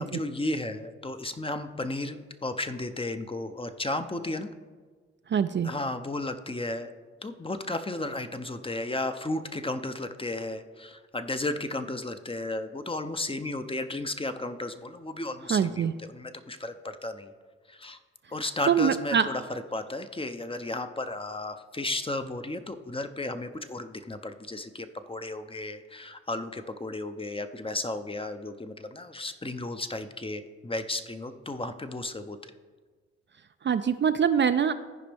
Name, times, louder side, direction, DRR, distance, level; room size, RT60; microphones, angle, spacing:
voice 1, 0.0-4.5 5.6-6.9 7.2-17.3 17.7-18.0 18.3-32.5, left 2 dB, 20° left, 9 dB, 0.7 m, -34 dB
voice 2, 5.3-5.7 15.5-15.9 18.7-19.3 33.6-34.7, right 7 dB, 40° right, 10 dB, 0.4 m, -23 dB
14.5 x 5.1 x 3.5 m, 1.5 s
supercardioid pair, 45°, 30 cm